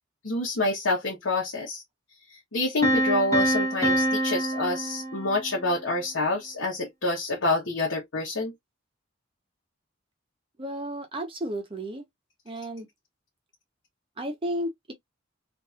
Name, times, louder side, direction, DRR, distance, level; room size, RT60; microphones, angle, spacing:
voice 1, 0.2-1.8 2.5-8.5, left 2 dB, 75° left, 1.0 m, -27 dB
Piano, 2.8-5.7, equal, 15° left, 1.0 m, -26 dB
voice 2, 10.6-12.1 12.5-12.9 14.2-14.9, equal, 30° right, 0.8 m, -33 dB
2.8 x 2.6 x 2.3 m
head